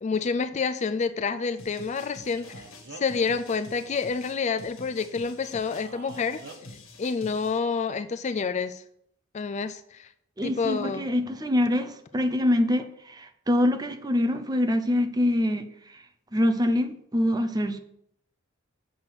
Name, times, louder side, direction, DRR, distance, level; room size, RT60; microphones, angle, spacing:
voice 1, 0.0-2.6 2.9-6.4 7.0-8.8 9.3-10.1 10.4-11.1, left 5 dB, 35° left, 0.4 m, -28 dB
sound 1, 1.6-7.6, left 2 dB, 80° left, 1.7 m, -47 dB
Male speech man speaking, 2.4-3.3 5.7-6.6, right 3 dB, 60° right, 1.1 m, -46 dB
voice 2, 10.4-15.7 16.3-17.8, left 1 dB, 20° right, 0.7 m, -25 dB
7.8 x 5.9 x 6.2 m
head